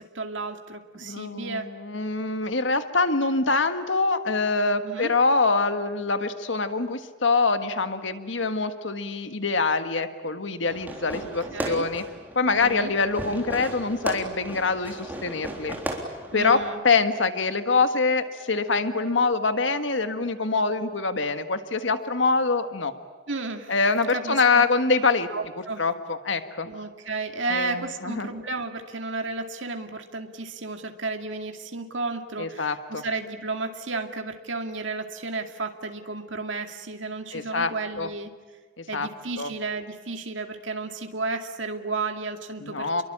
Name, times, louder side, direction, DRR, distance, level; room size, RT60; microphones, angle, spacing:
voice 1, 0.0-1.7 4.8-5.1 11.1-11.2 11.5-11.9 12.5-12.9 16.3-16.8 23.3-23.7 24.1-24.6 25.3-25.8 26.6-38.3 38.9-43.0, right 3 dB, 85° right, 5 dB, 2.4 m, -33 dB
voice 2, 1.0-12.0 12.3-15.8 16.3-16.6 16.8-22.9 23.7-25.3 25.8-26.7 27.5-28.3 32.4-33.0 37.3-38.1 38.8-39.1 39.4-39.5 42.6-43.0, left 4 dB, 85° left, 9 dB, 1.6 m, -24 dB
Fireworks, 10.7-16.7, right 1 dB, 10° right, 3.6 m, -36 dB
28.5 x 23.0 x 8.7 m, 1.4 s
head